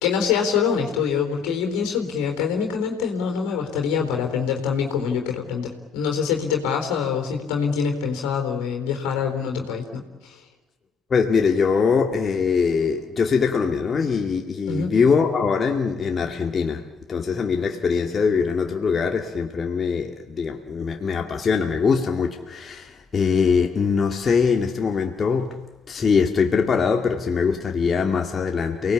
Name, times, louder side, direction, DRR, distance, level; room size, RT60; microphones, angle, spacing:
voice 1, 0.0-10.4 14.7-14.9, left 6 dB, 70° left, 3 dB, 4.0 m, -25 dB
voice 2, 11.1-16.8 17.1-25.6 25.9-28.9, left 5 dB, 40° left, 3 dB, 2.3 m, -22 dB
30.0 x 19.0 x 8.7 m, 1.2 s
figure-of-eight pair, 50°, 0 cm